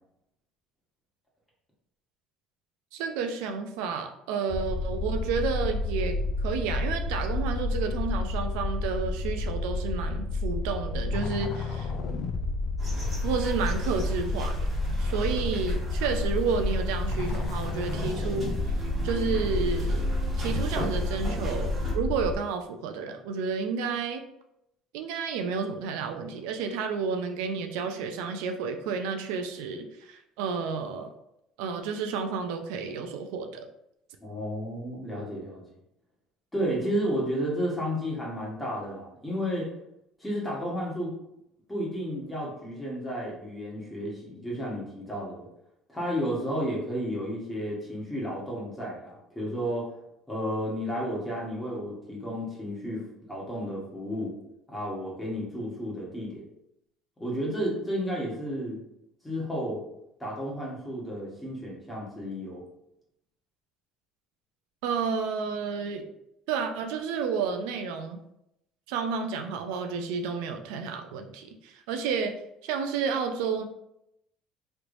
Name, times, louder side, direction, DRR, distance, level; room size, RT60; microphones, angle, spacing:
voice 1, 2.9-11.9 13.2-14.6 15.0-20.1 20.4-24.2 24.9-31.1 31.6-33.7 64.8-66.1 66.5-68.2 68.9-72.3 72.6-73.6, right 5 dB, 90° right, 6 dB, 0.4 m, -31 dB
sound 1, 4.5-22.4, left 2 dB, 50° left, 0.3 m, -30 dB
sound 2, 12.8-21.9, right 2 dB, 25° right, 1.3 m, -34 dB
voice 2, 34.2-35.6 36.5-39.7 40.2-41.1 41.7-45.5 45.9-49.9 50.3-53.0 53.3-54.3 54.7-56.4 57.2-58.8 59.2-59.8 60.2-62.6, equal, 5° left, -5 dB, 1.2 m, -32 dB
3.2 x 3.0 x 2.5 m, 0.80 s
cardioid pair, 125°, 0 cm